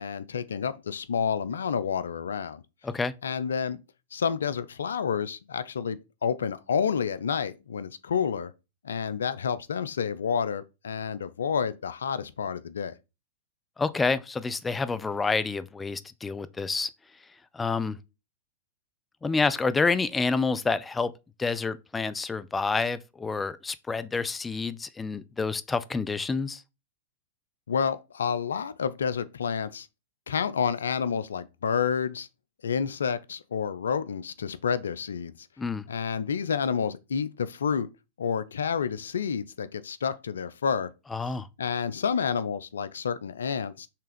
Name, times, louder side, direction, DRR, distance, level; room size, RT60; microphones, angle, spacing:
voice 1, 0.0-2.6 3.2-3.8 4.1-8.5 8.8-12.9 27.7-29.9 30.3-32.3 32.6-35.5 35.9-37.9 38.2-40.9 41.6-43.9, left 7 dB, 80° left, 0.6 m, -29 dB
voice 2, 13.8-16.9 17.5-18.0 19.2-21.1 21.4-26.6 35.6-35.9 41.1-41.5, left 4 dB, 15° left, 0.6 m, -28 dB
5.8 x 3.5 x 5.1 m
hypercardioid pair, 105°, 0 cm